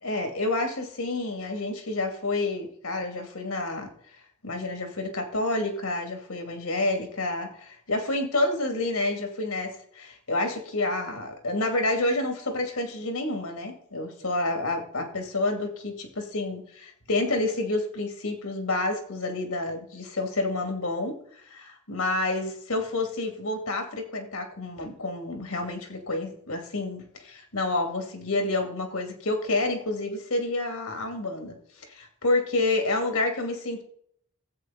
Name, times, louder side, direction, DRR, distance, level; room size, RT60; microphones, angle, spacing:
voice 1, 0.0-3.9 4.4-21.2 21.5-31.6 31.9-33.8, left 2 dB, 90° left, 5 dB, 2.6 m, -29 dB
13.5 x 8.3 x 4.1 m, 0.63 s
head